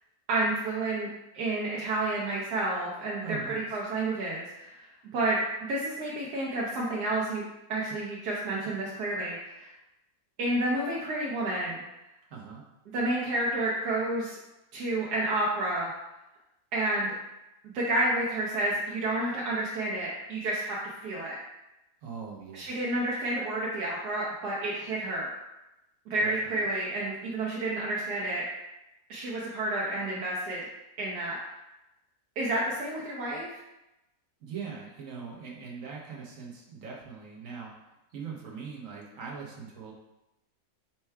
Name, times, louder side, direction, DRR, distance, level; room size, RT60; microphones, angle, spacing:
voice 1, 0.3-1.1 1.3-4.9 5.1-5.4 5.7-9.7 10.4-11.8 12.9-14.4 14.7-15.9 16.7-17.1 17.7-21.4 22.5-25.3 26.1-28.4 29.1-30.6 31.0-31.4 32.4-33.6, right 2 dB, 85° right, -5 dB, 1.2 m, -30 dB
voice 2, 3.2-3.8 12.3-12.6 22.0-22.9 26.2-26.6 34.4-37.7 38.1-39.9, right 6 dB, 60° right, -2 dB, 1.2 m, -41 dB
4.4 x 2.3 x 4.4 m, 0.94 s
omnidirectional pair, 1.6 m